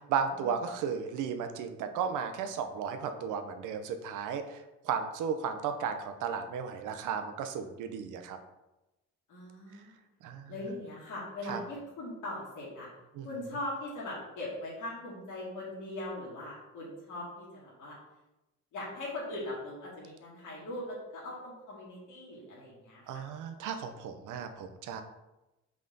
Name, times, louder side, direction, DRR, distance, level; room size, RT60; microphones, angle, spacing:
voice 1, 0.0-8.4 10.2-10.5 11.4-11.6 13.1-13.3 23.1-25.0, right 7 dB, 90° right, 7 dB, 0.8 m, -34 dB
voice 2, 9.3-10.0 10.5-12.9 13.2-18.0 18.7-23.2, left 1 dB, 80° left, -6 dB, 2.4 m, -40 dB
5.7 x 5.0 x 3.8 m, 0.98 s
cardioid pair, 90°, 30 cm